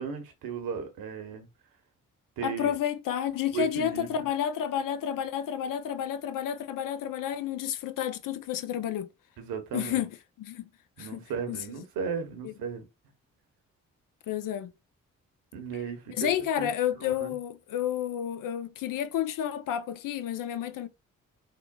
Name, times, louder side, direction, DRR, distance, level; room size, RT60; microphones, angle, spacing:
voice 1, 0.0-1.5 2.4-2.7 3.5-4.1 9.4-10.0 11.0-12.8 15.5-16.3 16.6-16.7 17.0-17.4, right 6 dB, 70° right, 1.0 m, -35 dB
voice 2, 2.4-9.1 9.7-10.6 11.0-11.2 11.5-11.6 12.4-12.5 14.3-14.7 16.1-20.9, left 10 dB, 60° left, 0.5 m, -31 dB
3.7 x 2.1 x 2.2 m
hypercardioid pair, 45°, 37 cm